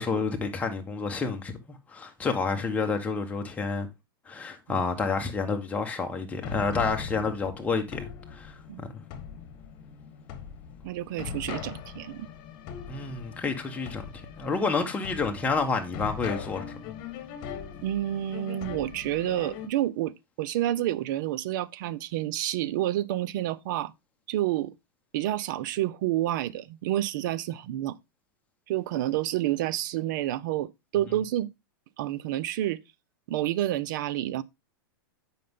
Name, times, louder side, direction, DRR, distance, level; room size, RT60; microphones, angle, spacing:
voice 1, 0.0-3.9 4.3-9.0 12.9-14.1 14.4-16.6, left 4 dB, 10° left, 1.3 m, -29 dB
sound 1, 6.4-19.7, left 7 dB, 40° left, 1.5 m, -40 dB
voice 2, 10.8-12.3 17.8-23.9 24.3-24.7 25.1-28.0 28.7-31.5 32.0-32.8 33.3-34.4, right 13 dB, 60° right, 0.6 m, -29 dB
7.5 x 5.5 x 3.6 m
hypercardioid pair, 130°, 12 cm